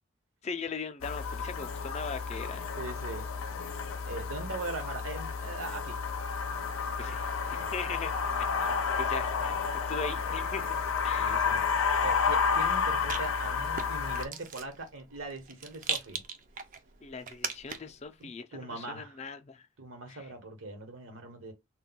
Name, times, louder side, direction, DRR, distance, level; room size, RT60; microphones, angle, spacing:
voice 1, 0.4-2.7 7.0-8.1 8.4-9.6 9.9-10.8 11.0-11.5 17.0-19.6 20.1-20.2, left 5 dB, 30° left, 0.4 m, -40 dB
sound 1, 1.0-14.3, left 5 dB, 85° left, 0.5 m, -31 dB
voice 2, 2.7-3.3 4.0-6.0 7.0-7.4 8.7-9.1 11.2-11.6 12.0-16.2 18.2-19.2 19.8-21.5, right 2 dB, 75° right, 1.0 m, -41 dB
Rattle, 11.9-18.0, right 6 dB, 40° right, 0.4 m, -41 dB
2.2 x 2.2 x 3.8 m
head